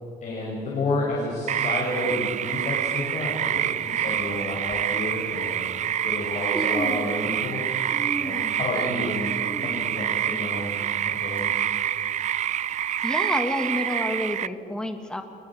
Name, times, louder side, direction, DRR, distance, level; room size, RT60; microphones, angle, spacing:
voice 1, 0.2-5.6 6.0-7.6 8.1-9.3 9.6-10.7 11.0-11.6, left 2 dB, 45° left, -4 dB, 6.4 m, -30 dB
sound 1, 1.5-14.5, right 10 dB, 45° right, 0.5 m, -27 dB
Human voice, 2.9-3.0 3.9-4.0 4.6-4.8 5.8-5.9 6.2-7.6 7.9-11.4 11.8-11.9 12.8-12.9, right 1 dB, 15° right, 2.9 m, -36 dB
voice 2, 13.0-15.2, left 1 dB, 5° left, 6 dB, 1.7 m, -29 dB
22.0 x 19.5 x 7.6 m, 3.0 s
cardioid pair, 110°, 17 cm